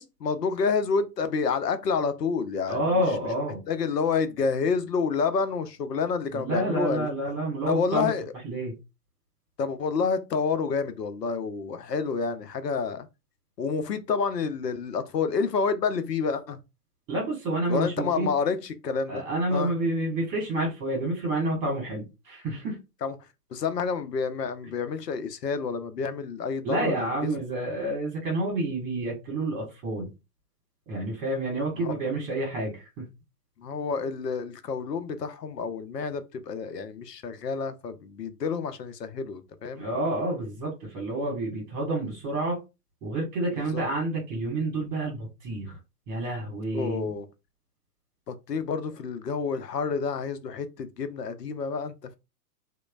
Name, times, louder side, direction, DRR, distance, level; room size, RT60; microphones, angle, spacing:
voice 1, 0.0-3.0 3.7-7.1 7.7-8.3 9.6-13.1 13.6-16.6 17.7-19.2 19.5-19.7 23.0-23.2 23.5-27.3 31.8-31.9 33.6-39.8 43.5-43.8 46.7-47.3 48.3-52.2, left 5 dB, 80° left, 0.6 m, -29 dB
voice 2, 2.7-3.6 6.3-8.1 8.4-8.7 17.1-18.3 19.1-22.8 26.6-30.1 30.9-33.1 39.8-42.6 43.0-45.7 46.1-47.1, right 1 dB, 35° right, 1.3 m, -29 dB
2.9 x 2.1 x 2.3 m
figure-of-eight pair, 110°, 47 cm